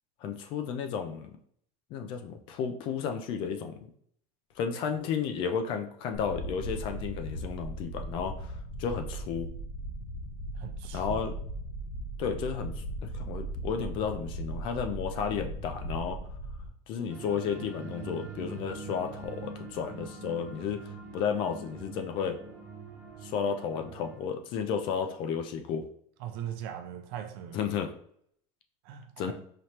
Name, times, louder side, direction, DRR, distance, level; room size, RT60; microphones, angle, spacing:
voice 1, 0.2-1.3 1.9-3.7 4.6-9.5 10.9-11.3 12.2-12.7 13.1-16.2 16.9-20.8 21.1-22.4 23.2-25.8 27.5-27.9 29.2-29.3, left 7 dB, 35° left, 0.4 m, -33 dB
sound 1, 6.1-16.7, right 1 dB, 75° left, 0.9 m, -38 dB
voice 2, 10.6-11.0 26.2-27.6 28.8-29.3, right 10 dB, 55° right, 0.6 m, -40 dB
sound 2, 17.1-24.2, right 3 dB, 20° right, 0.8 m, -44 dB
4.9 x 3.0 x 2.8 m
cardioid pair, 180°, 15 cm